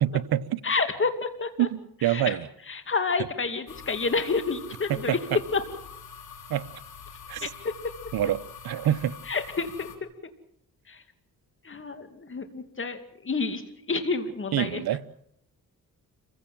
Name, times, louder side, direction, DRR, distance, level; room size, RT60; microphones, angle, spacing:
voice 1, 0.0-0.6 1.6-2.5 4.9-5.4 6.5-6.6 7.3-7.5 8.1-9.2 14.5-15.0, right 12 dB, 75° right, 0.9 m, -26 dB
voice 2, 0.6-1.7 2.0-2.4 2.7-5.2 5.5-5.6 7.4-7.7 9.3-10.1 10.9-11.0 11.6-13.6 13.9-15.0, left 4 dB, 35° left, 2.5 m, -29 dB
sound 1, 3.7-10.0, left 6 dB, 80° left, 3.4 m, -45 dB
26.5 x 16.0 x 7.5 m
cardioid pair, 75°, 36 cm